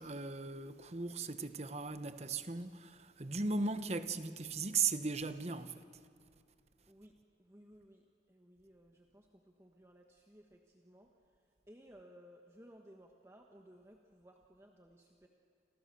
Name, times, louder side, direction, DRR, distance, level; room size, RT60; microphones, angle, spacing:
voice 1, 0.0-5.8, right 4 dB, 35° right, 1.1 m, -37 dB
voice 2, 6.9-15.3, equal, 15° right, 1.3 m, -60 dB
28.5 x 27.0 x 6.9 m
head